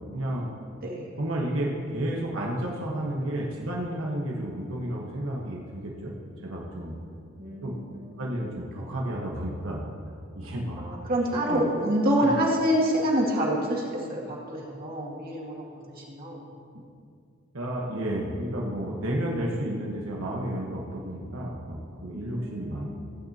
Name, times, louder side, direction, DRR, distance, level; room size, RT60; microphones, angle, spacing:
voice 1, 0.1-0.5 1.2-6.1 6.4-6.9 7.6-7.8 8.2-9.8 10.3-10.8 11.5-11.9 12.2-12.4 16.7-16.8 17.5-23.0, right 1 dB, 90° right, -3 dB, 1.3 m, -31 dB
voice 2, 0.8-1.2 7.4-8.3 10.8-16.5 22.3-23.0, equal, 50° right, -4 dB, 2.2 m, -27 dB
16.5 x 9.0 x 2.9 m, 2.4 s
head